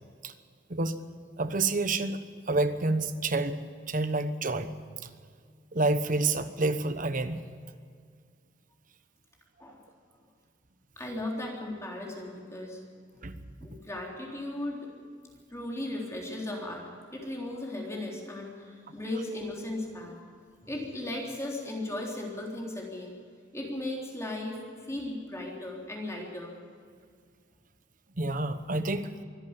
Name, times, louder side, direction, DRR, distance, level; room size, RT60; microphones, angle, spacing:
voice 1, 1.4-4.7 5.7-7.4 13.2-13.4 28.2-29.1, right 2 dB, 45° right, 11 dB, 1.1 m, -28 dB
voice 2, 11.0-12.8 13.6-14.9 15.5-20.2 20.6-23.1 23.5-26.5, left 1 dB, 15° left, -2 dB, 3.6 m, -36 dB
24.5 x 11.5 x 9.7 m, 2.1 s
head